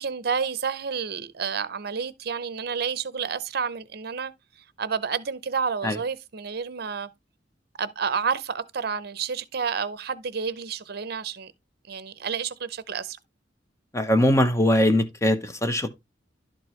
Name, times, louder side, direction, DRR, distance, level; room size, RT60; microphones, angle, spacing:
voice 1, 0.0-4.3 4.8-7.1 7.8-11.5 11.9-13.2, right 6 dB, 55° right, 0.7 m, -30 dB
voice 2, 13.9-15.9, left 1 dB, 15° left, 0.8 m, -21 dB
11.5 x 4.6 x 3.1 m
head